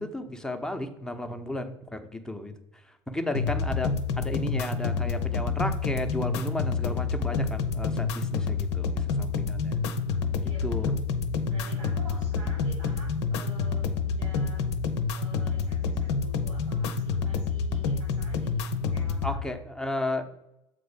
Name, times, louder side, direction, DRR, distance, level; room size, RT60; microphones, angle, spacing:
voice 1, 0.0-9.8 10.6-10.9 19.2-20.2, left 1 dB, 5° left, 5 dB, 0.9 m, -34 dB
sound 1, 3.3-19.4, left 5 dB, 60° left, 0.7 m, -28 dB
voice 2, 10.4-11.0 11.5-14.6 15.1-19.4, right 1 dB, 65° right, -4 dB, 2.8 m, -48 dB
7.6 x 4.2 x 5.0 m, 0.86 s
figure-of-eight pair, 65°, 16 cm